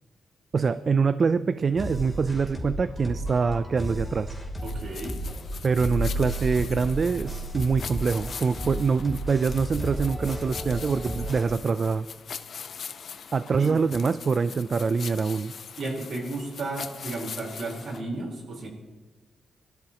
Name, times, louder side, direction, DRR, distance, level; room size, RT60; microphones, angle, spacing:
voice 1, 0.5-4.3 5.6-12.1 13.3-15.5, right 5 dB, 50° right, 13 dB, 0.4 m, -25 dB
sound 1, 1.7-11.4, equal, ahead, 3.2 m, -33 dB
sound 2, 4.6-18.0, left 6 dB, 65° left, 0.8 m, -42 dB
voice 2, 4.6-5.2 13.6-13.7 15.8-18.7, right 2 dB, 65° right, 0 dB, 4.1 m, -33 dB
21.5 x 13.0 x 3.0 m, 1.2 s
cardioid pair, 95°, 0 cm